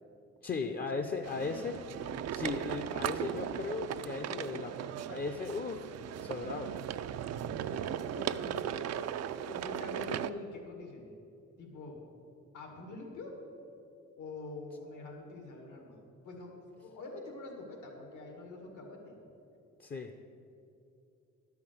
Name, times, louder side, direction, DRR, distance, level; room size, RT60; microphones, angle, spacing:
voice 1, 0.4-1.8 2.3-5.8 6.2-6.7 19.8-20.1, left 4 dB, 30° left, 5 dB, 0.6 m, -37 dB
sound 1, 1.2-10.3, right 10 dB, 60° right, 0.5 m, -37 dB
voice 2, 1.3-1.7 7.7-11.1 11.6-12.0 12.5-13.3 14.2-16.0 16.2-19.2, left 2 dB, 80° left, 2 dB, 2.0 m, -45 dB
11.5 x 5.9 x 7.9 m, 2.7 s
cardioid pair, 90°, 30 cm